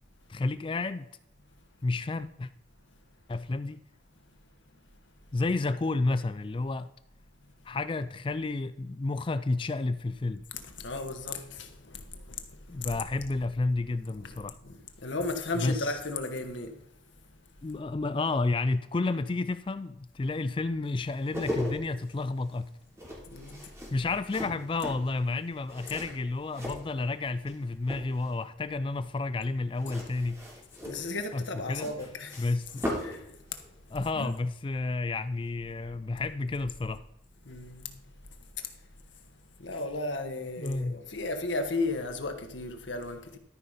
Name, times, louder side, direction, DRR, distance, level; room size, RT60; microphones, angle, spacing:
voice 1, 0.3-1.1 1.8-2.5 3.3-3.8 5.3-6.9 7.7-10.4 12.7-14.6 15.6-16.0 17.6-22.7 23.9-30.4 31.3-31.9 32.4-32.9 33.9-37.0 40.6-41.0, left 3 dB, 25° left, 0.3 m, -31 dB
voice 2, 10.5-13.0 14.1-16.8 23.2-23.7 30.8-32.5 33.0-34.3 37.4-38.0 38.6-38.9 39.1-39.2 39.6-43.4, left 2 dB, 85° left, 1.4 m, -35 dB
sound 1, 21.1-27.5 27.8-28.4 29.8-33.2 33.5-33.7, left 1 dB, 15° right, 3.2 m, -38 dB
13.0 x 5.2 x 5.6 m
head